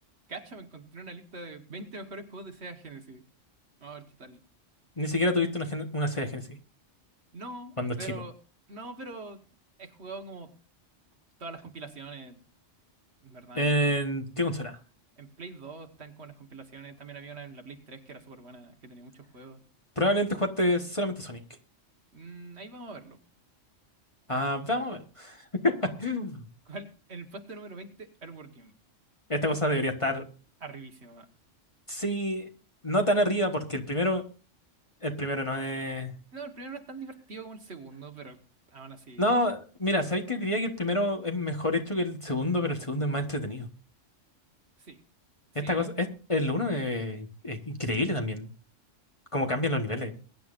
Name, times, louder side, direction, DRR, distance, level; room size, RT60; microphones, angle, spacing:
voice 1, 0.3-3.2 3.8-4.4 7.3-8.4 8.7-9.4 9.8-10.6 11.4-12.4 13.2-13.8 15.2-19.6 22.1-23.2 24.3-24.5 26.7-28.7 30.6-31.3 36.3-38.4 38.7-39.4 44.8-45.0 45.6-45.9, right 3 dB, 60° right, 4 dB, 1.8 m, -43 dB
voice 2, 5.0-6.6 7.8-7.9 13.5-14.8 20.0-21.4 24.3-26.4 29.3-30.2 31.9-32.5 32.8-34.2 35.0-36.1 39.2-43.7 45.5-48.5 49.3-50.1, left 1 dB, 25° left, 4 dB, 1.4 m, -28 dB
22.5 x 10.5 x 2.6 m, 0.36 s
omnidirectional pair, 1.3 m